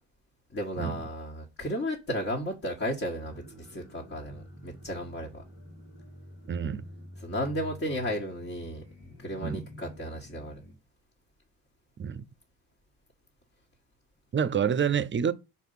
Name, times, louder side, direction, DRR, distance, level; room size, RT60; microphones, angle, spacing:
voice 1, 0.5-5.4 7.2-8.8 9.2-10.6, equal, 35° left, 1.6 m, -34 dB
sound 1, 3.2-10.7, left 1 dB, 85° left, 2.6 m, -48 dB
voice 2, 6.5-6.8 9.4-9.6 12.0-12.2 14.3-15.3, right 7 dB, 30° right, 0.6 m, -27 dB
4.5 x 4.4 x 5.5 m
supercardioid pair, 60°, 36 cm